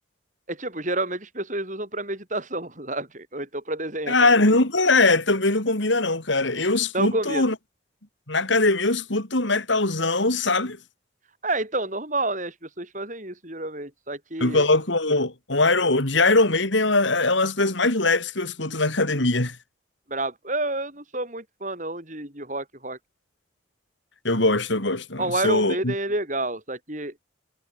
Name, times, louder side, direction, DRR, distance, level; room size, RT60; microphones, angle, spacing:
voice 1, 0.5-4.3 6.9-7.5 11.4-14.6 20.1-23.0 25.2-27.1, right 2 dB, 40° right, 7.0 m, -29 dB
voice 2, 4.1-7.6 8.3-10.8 14.4-19.6 24.2-25.9, left 2 dB, 70° left, 3.8 m, -21 dB
head